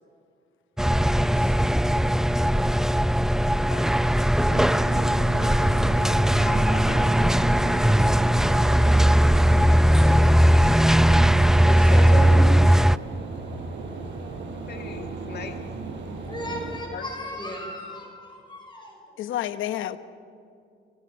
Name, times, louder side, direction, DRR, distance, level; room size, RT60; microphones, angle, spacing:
sound 1, 0.8-13.0, equal, ahead, 0.5 m, -19 dB
voice 1, 1.2-1.8 19.2-20.0, left 12 dB, 80° left, 11 dB, 1.1 m, -32 dB
voice 2, 3.7-4.1 4.5-4.6 5.1-5.2 6.5-7.2 14.5-15.6 16.9-17.1, left 6 dB, 55° left, 5 dB, 2.3 m, -40 dB
sound 2, 4.5-16.8, right 4 dB, 70° right, 5.2 m, -36 dB
voice 3, 5.3-6.8 11.3-12.9 16.2-19.0, left 1 dB, 25° left, 1 dB, 5.8 m, -35 dB
29.0 x 23.0 x 5.6 m, 2.4 s
cardioid pair, 90°, 20 cm